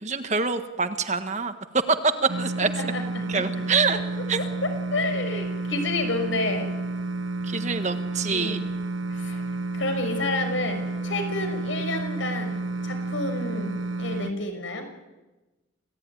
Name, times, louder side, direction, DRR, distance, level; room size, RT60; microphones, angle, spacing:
voice 1, 0.0-1.5 2.0-2.1 2.4-2.7 3.3-4.0 4.3-4.4 7.5-8.6, right 4 dB, 35° right, 8 dB, 1.5 m, -26 dB
sound 1, 2.3-14.3, right 2 dB, 70° right, 1.1 m, -31 dB
voice 2, 2.8-3.7 3.9-6.7 8.3-8.6 9.1-9.4 9.7-14.9, left 2 dB, 70° left, 6 dB, 6.1 m, -30 dB
28.0 x 17.0 x 9.9 m, 1.1 s
head